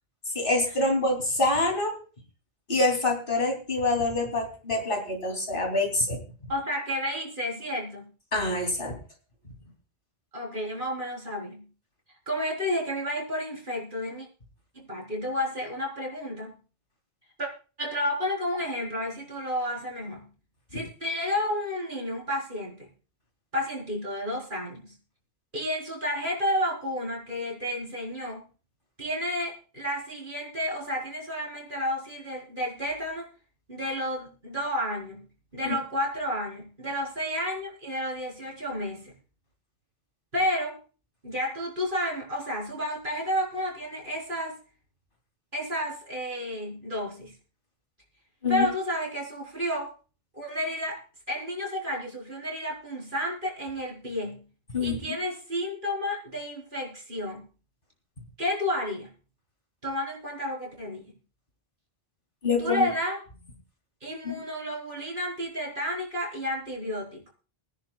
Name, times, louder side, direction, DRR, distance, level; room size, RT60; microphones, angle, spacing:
voice 1, 0.3-2.0 2.7-6.2 8.3-9.0 48.4-48.7 54.7-55.1 62.4-62.9 64.2-64.3, left 2 dB, 55° left, 2 dB, 3.2 m, -26 dB
voice 2, 6.5-8.1 10.3-11.7 12.3-14.3 14.7-16.6 17.4-17.5 17.8-20.3 20.7-22.9 23.5-24.9 25.5-28.4 29.0-33.3 33.7-35.3 35.5-39.1 40.3-40.8 41.2-44.6 45.5-47.4 48.5-49.9 50.3-51.0 51.3-54.4 54.8-57.5 58.4-59.1 59.8-61.1 62.6-63.2 64.0-67.2, equal, 50° right, -2 dB, 4.2 m, -31 dB
24.5 x 10.5 x 2.3 m, 0.36 s
omnidirectional pair, 1.1 m